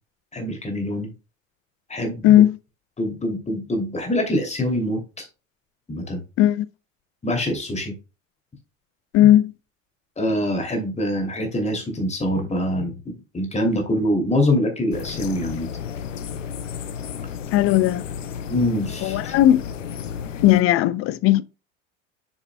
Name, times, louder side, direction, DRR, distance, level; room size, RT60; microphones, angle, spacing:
voice 1, 0.3-1.1 1.9-2.4 3.0-5.3 5.9-6.2 7.2-7.9 10.2-15.7 18.5-19.3, left 1 dB, 15° left, 2.7 m, -24 dB
voice 2, 2.2-2.6 6.4-6.7 9.1-9.5 17.5-18.1 19.0-19.6 20.4-21.4, left 13 dB, 35° left, 0.5 m, -16 dB
sound 1, 14.9-20.6, left 7 dB, 75° left, 0.8 m, -33 dB
7.2 x 6.7 x 2.2 m
figure-of-eight pair, 70°, 39 cm